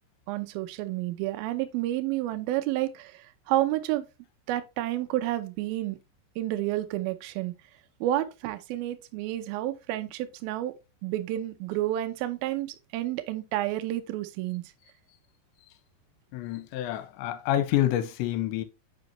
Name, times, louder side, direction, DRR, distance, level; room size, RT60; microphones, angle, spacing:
voice 1, 0.3-4.0 4.5-6.0 6.4-7.5 8.0-10.7 11.0-14.6, right 14 dB, 90° right, 2.1 m, -30 dB
voice 2, 16.3-18.6, left 12 dB, 85° left, 3.0 m, -28 dB
7.4 x 5.2 x 3.0 m
omnidirectional pair, 5.2 m